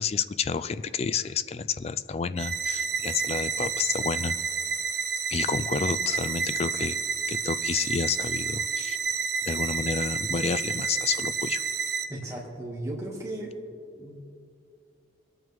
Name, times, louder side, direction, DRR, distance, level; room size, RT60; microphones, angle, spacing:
voice 1, 0.0-4.4 5.3-7.0 7.3-9.0 9.4-11.6, left 5 dB, 30° left, 14 dB, 0.3 m, -30 dB
sound 1, 2.4-12.0, right 5 dB, 60° right, 0.9 m, -30 dB
voice 2, 12.1-13.5 13.9-14.2, right 1 dB, 15° right, -4 dB, 2.2 m, -36 dB
23.0 x 9.0 x 3.6 m, 2.5 s
head